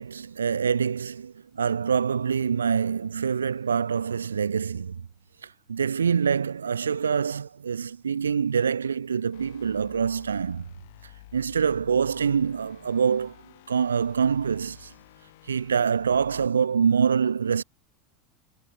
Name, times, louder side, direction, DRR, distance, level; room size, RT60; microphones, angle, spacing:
voice 1, 0.0-5.1 5.4-10.7 11.3-13.4 13.7-14.9 15.5-17.6, right 6 dB, 75° right, 0.5 m, -25 dB
sound 1, 9.3-16.5, left 18 dB, 55° left, 4.2 m, -51 dB
figure-of-eight pair, 80°, 0 cm